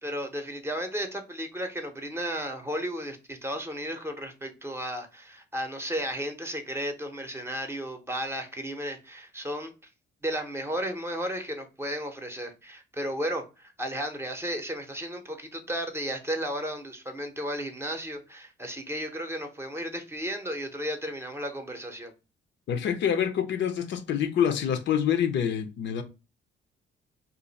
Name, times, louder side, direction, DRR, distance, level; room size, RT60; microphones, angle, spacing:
voice 1, 0.0-9.7 10.2-22.1, equal, 10° right, 0.7 m, -34 dB
voice 2, 22.7-26.0, left 8 dB, 65° left, 0.6 m, -26 dB
2.5 x 2.4 x 3.9 m
cardioid pair, 90°, 20 cm